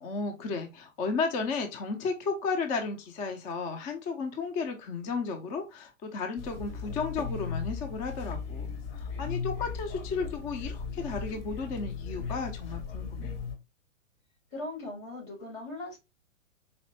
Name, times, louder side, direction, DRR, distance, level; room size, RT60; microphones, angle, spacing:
voice 1, 0.0-13.3, left 4 dB, 20° left, 4 dB, 0.6 m, -34 dB
sound 1, 6.4-13.6, left 5 dB, 50° left, 1.0 m, -37 dB
voice 2, 14.5-16.0, left 2 dB, 90° left, 0 dB, 2.5 m, -39 dB
4.3 x 2.9 x 2.6 m, 0.25 s
figure-of-eight pair, 110°, 39 cm